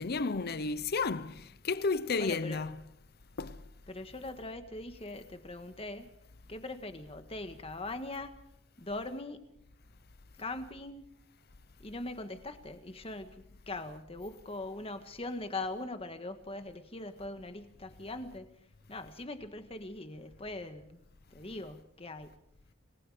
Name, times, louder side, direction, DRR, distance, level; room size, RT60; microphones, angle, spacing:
voice 1, 0.0-2.8 3.4-3.6, left 4 dB, 50° left, 0.7 m, -32 dB
voice 2, 2.2-2.6 3.9-6.1 6.5-8.3 8.8-9.4 10.4-11.1 11.8-18.5 18.9-21.0 21.3-22.4, left 2 dB, 30° left, 1.6 m, -41 dB
28.0 x 20.0 x 5.1 m
head